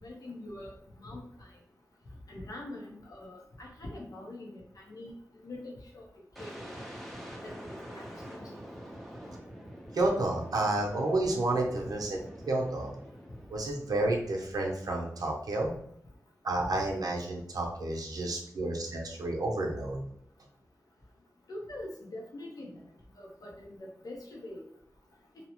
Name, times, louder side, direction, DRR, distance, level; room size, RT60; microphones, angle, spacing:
voice 1, 0.0-0.7 1.0-1.5 2.3-4.6 4.9-6.0 6.4-6.7 7.4-8.4 21.5-22.7 23.2-24.6, left 1 dB, 70° left, -1 dB, 0.7 m, -44 dB
sound 1, 6.4-14.2, equal, ahead, 0.6 m, -46 dB
voice 2, 9.9-12.2 12.5-12.9 13.5-15.7 16.4-20.0, right 2 dB, 80° right, 0 dB, 0.6 m, -30 dB
2.8 x 2.0 x 2.9 m, 0.70 s
wide cardioid pair, 85°, 6 cm